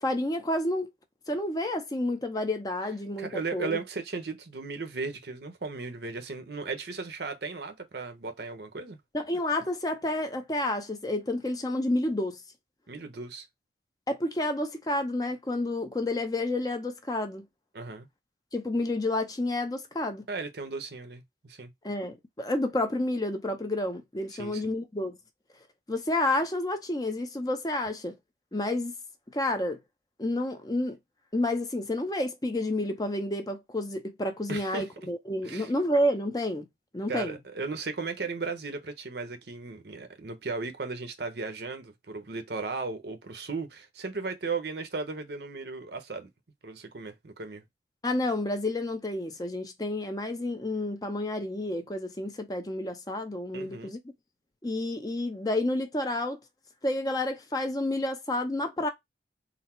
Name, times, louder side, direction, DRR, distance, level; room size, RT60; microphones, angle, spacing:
voice 1, 0.0-0.9 1.3-3.8 9.1-12.4 14.1-17.5 18.5-20.2 21.8-25.2 25.9-28.2 28.5-28.9 29.3-29.8 30.2-31.0 31.3-36.7 36.9-37.4 48.0-54.0 54.6-56.4 56.8-58.9, left 1 dB, 20° left, 0.6 m, -30 dB
voice 2, 3.2-9.0 12.9-13.4 17.7-18.1 20.3-21.7 24.3-24.6 34.5-34.9 35.4-35.7 37.1-46.3 46.6-47.6 53.5-53.9, right 4 dB, 60° right, 0.8 m, -36 dB
4.0 x 2.1 x 4.3 m
head